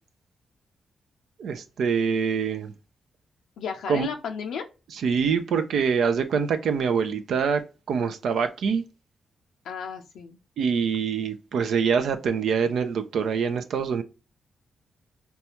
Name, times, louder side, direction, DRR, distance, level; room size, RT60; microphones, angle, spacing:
voice 1, 1.4-2.7 3.9-4.1 4.9-7.6 7.9-8.8 10.6-14.0, right 6 dB, 75° right, 0.4 m, -25 dB
voice 2, 3.6-4.7 9.6-10.4, left 6 dB, 80° left, 0.4 m, -33 dB
4.0 x 2.3 x 2.8 m
supercardioid pair, 50°, 0 cm